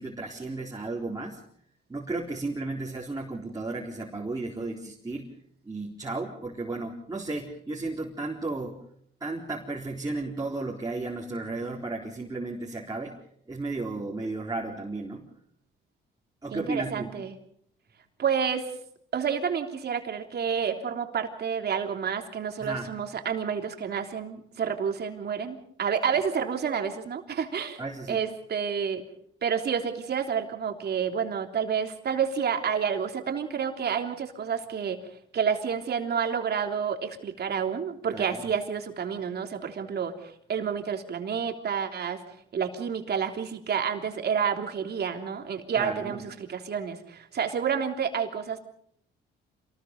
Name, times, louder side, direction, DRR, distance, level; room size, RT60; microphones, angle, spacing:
voice 1, 0.0-1.4 1.9-5.3 5.6-8.8 9.2-13.2 13.5-15.2 16.4-17.1 22.6-22.9 27.8-28.2 38.1-38.5 45.8-46.2, right 2 dB, 20° right, -2 dB, 4.2 m, -34 dB
voice 2, 16.5-17.3 18.2-18.7 19.1-27.8 28.1-29.0 29.4-35.0 35.3-42.2 42.5-48.6, right 7 dB, 55° right, 4 dB, 3.4 m, -29 dB
27.5 x 20.0 x 5.5 m, 0.66 s
cardioid pair, 90°, 20 cm